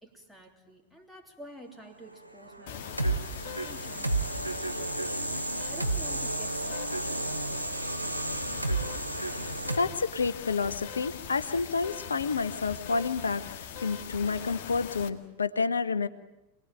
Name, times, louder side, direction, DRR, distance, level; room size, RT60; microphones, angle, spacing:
voice 1, 0.0-7.5, right 1 dB, ahead, 2 dB, 3.2 m, -50 dB
sound 1, 2.4-9.8, right 2 dB, 85° right, 1.2 m, -32 dB
sound 2, 2.7-15.1, left 8 dB, 50° left, 2.0 m, -42 dB
voice 2, 9.7-16.1, left 4 dB, 75° left, 13 dB, 1.0 m, -29 dB
27.0 x 19.5 x 8.9 m, 0.91 s
figure-of-eight pair, 90°, 0 cm